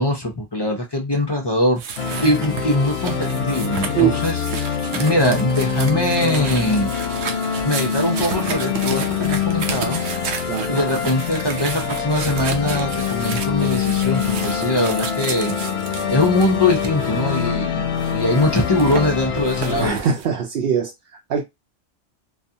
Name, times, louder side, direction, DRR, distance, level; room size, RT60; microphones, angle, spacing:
voice 1, 0.0-1.8 2.2-6.9 7.6-10.0 10.3-10.4 10.7-15.6 16.1-20.0, left 1 dB, 40° left, 0.4 m, -22 dB
sound 1, 1.8-17.5 18.0-20.3, right 6 dB, 85° right, 0.9 m, -32 dB
sound 2, 2.0-19.9, left 7 dB, 65° left, 0.8 m, -25 dB
voice 2, 10.5-10.8 19.8-20.9 21.3-21.4, right 7 dB, 60° right, 0.7 m, -21 dB
2.4 x 2.3 x 2.7 m
omnidirectional pair, 1.3 m